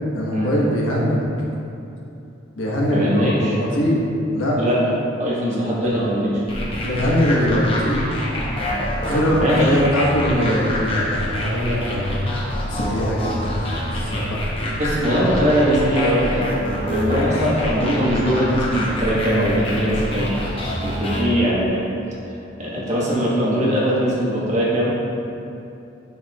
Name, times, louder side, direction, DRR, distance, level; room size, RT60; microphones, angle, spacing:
voice 1, 0.1-1.2 2.6-4.0 4.3-4.6 5.8-6.3 6.8-8.0 8.9-12.2 12.7-13.5 13.9-14.4, equal, 80° left, -4 dB, 1.2 m, -21 dB
voice 2, 2.9-3.6 4.6-6.3 9.3-9.8 14.8-16.6 16.9-21.8 22.6-24.9, equal, 35° right, -7 dB, 1.4 m, -21 dB
sound 1, 6.5-21.2, equal, 30° left, 0.8 m, -26 dB
9.3 x 4.5 x 2.4 m, 2.8 s
head